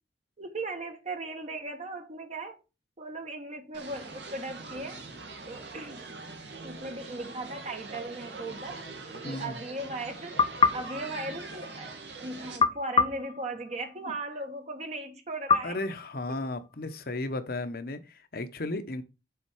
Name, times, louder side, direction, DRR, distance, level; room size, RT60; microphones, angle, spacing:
voice 1, 0.4-2.6 3.0-5.1 5.5-6.1 6.6-8.8 9.2-10.4 10.7-11.9 12.2-15.8, right 2 dB, 40° right, 1.1 m, -37 dB
sound 1, 3.7-12.6, right 3 dB, 80° right, 2.0 m, -43 dB
voice 2, 9.2-9.6 15.6-19.0, left 2 dB, 55° left, 1.0 m, -34 dB
sound 2, 10.4-12.0 12.6-14.2 15.5-16.8, left 5 dB, 30° left, 0.5 m, -28 dB
7.2 x 4.2 x 4.8 m
head